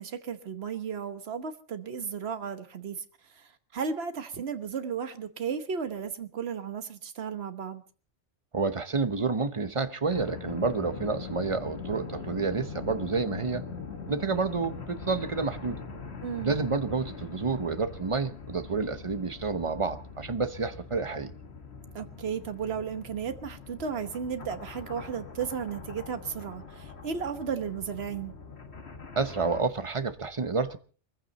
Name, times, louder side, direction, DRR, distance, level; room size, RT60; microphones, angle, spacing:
voice 1, 0.0-3.0 3.4-7.8 16.2-16.5 21.9-28.3, right 6 dB, 60° right, 1.4 m, -34 dB
voice 2, 8.5-13.6 14.1-15.8 16.4-21.3 29.2-30.8, right 4 dB, 30° right, 0.9 m, -29 dB
sound 1, 10.1-29.6, left 4 dB, 65° left, 2.0 m, -42 dB
22.0 x 15.0 x 4.1 m
omnidirectional pair, 1.2 m